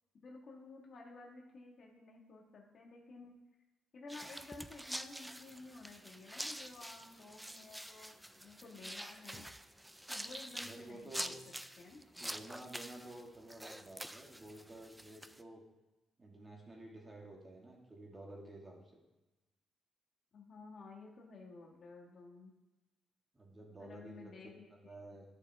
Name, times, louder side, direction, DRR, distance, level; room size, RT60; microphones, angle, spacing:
voice 1, 0.2-3.4 3.9-9.5 10.1-11.4 11.8-12.1 20.3-22.5 23.8-24.9, left 3 dB, 55° left, -1 dB, 1.9 m, -53 dB
sound 1, 4.1-15.4, right 1 dB, 5° right, 0.4 m, -47 dB
voice 2, 10.6-11.4 12.1-15.6 16.2-19.0 23.3-25.2, right 1 dB, 25° right, -2 dB, 2.3 m, -52 dB
10.5 x 6.5 x 3.7 m, 1.1 s
cardioid pair, 90°, 0 cm